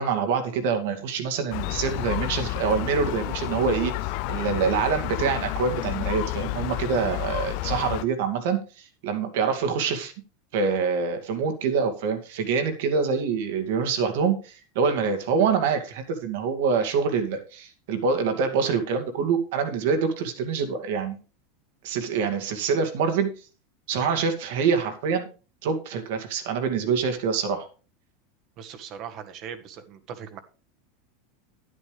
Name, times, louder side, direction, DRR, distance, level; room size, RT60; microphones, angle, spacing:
voice 1, 0.0-10.1 10.5-21.2 21.8-23.3 23.9-25.3 25.6-27.7, right 5 dB, 70° right, 2.2 m, -25 dB
Gull seagull, 1.5-8.0, left 18 dB, 55° left, 0.4 m, -30 dB
voice 2, 28.6-30.4, right 8 dB, 45° right, 1.5 m, -39 dB
10.5 x 9.7 x 3.4 m
supercardioid pair, 140°, 0 cm